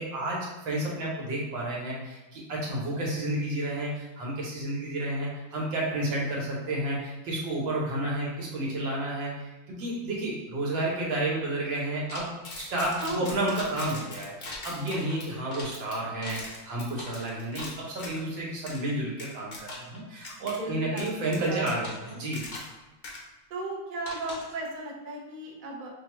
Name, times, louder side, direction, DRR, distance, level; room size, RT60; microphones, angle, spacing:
voice 1, 0.0-12.3 12.5-22.4, right 1 dB, 80° right, -4 dB, 1.8 m, -31 dB
sound 1, 12.1-18.2 18.7-18.8 19.2-20.0 20.2-20.6 21.0-22.8 23.0-23.2 24.1-24.6, left 2 dB, 60° left, 0.6 m, -41 dB
voice 2, 13.0-13.3 20.6-21.7 22.1-22.3 23.5-25.9, right 1 dB, 45° right, -3 dB, 0.6 m, -36 dB
6.0 x 2.3 x 3.0 m, 1.1 s
omnidirectional pair, 2.1 m